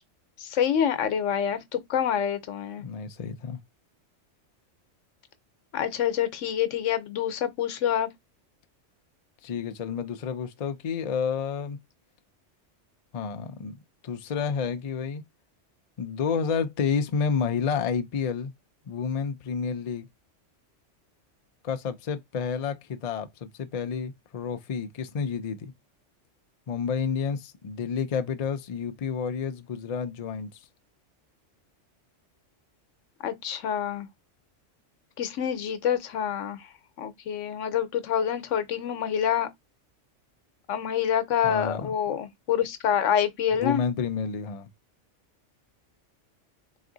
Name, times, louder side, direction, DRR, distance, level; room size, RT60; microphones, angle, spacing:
voice 1, 0.4-2.8 5.7-8.1 33.2-34.1 35.2-36.6 37.0-39.5 40.7-43.8, left 9 dB, 85° left, 1.1 m, -27 dB
voice 2, 2.8-3.6 9.4-11.8 13.1-15.2 16.0-18.5 18.9-20.1 21.6-25.7 26.7-30.5 41.4-41.9 43.6-44.7, left 6 dB, 55° left, 0.4 m, -30 dB
3.5 x 3.0 x 3.8 m
omnidirectional pair, 1.3 m